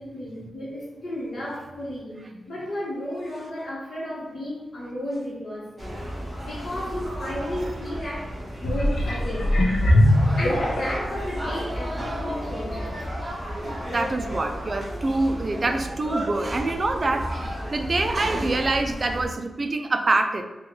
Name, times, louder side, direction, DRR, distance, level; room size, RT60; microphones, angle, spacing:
voice 1, 0.0-6.0 6.5-8.4 8.6-12.9 13.9-14.0, left 1 dB, 55° left, -6 dB, 1.0 m, -33 dB
sound 1, 5.8-19.3, equal, 10° right, 0.9 m, -33 dB
voice 2, 7.2-7.7 12.0-12.2 13.6-20.4, right 2 dB, 35° right, 6 dB, 0.3 m, -26 dB
sound 2, 8.6-11.2 11.8-11.9, left 1 dB, 80° left, 0.6 m, -21 dB
3.7 x 2.3 x 3.0 m, 1.1 s
wide cardioid pair, 150°, 0 cm